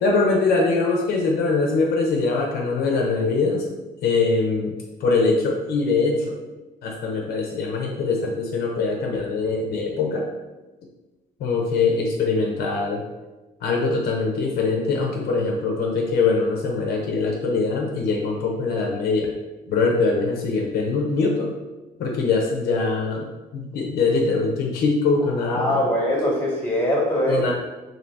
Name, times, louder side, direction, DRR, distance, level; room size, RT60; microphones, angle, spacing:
voice 1, 0.0-3.7 4.0-6.4 6.8-10.3 11.4-13.0 13.6-19.3 19.7-21.5 22.0-23.3 23.5-25.8 27.3-27.5, left 4 dB, 65° left, 0 dB, 0.5 m, -22 dB
voice 2, 25.4-27.5, equal, 10° left, -3 dB, 1.2 m, -22 dB
2.7 x 2.6 x 3.3 m, 1.1 s
cardioid pair, 110°, 17 cm